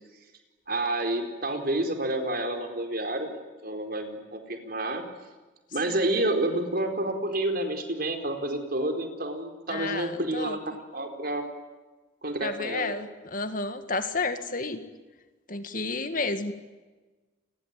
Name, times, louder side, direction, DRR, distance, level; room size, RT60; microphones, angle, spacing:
voice 1, 0.7-5.0 5.7-11.4 12.2-12.9, right 1 dB, 50° right, 5 dB, 4.5 m, -29 dB
voice 2, 9.7-10.6 12.4-14.8 15.5-16.5, left 3 dB, 45° left, 9 dB, 2.1 m, -31 dB
30.0 x 21.5 x 9.3 m, 1.3 s
head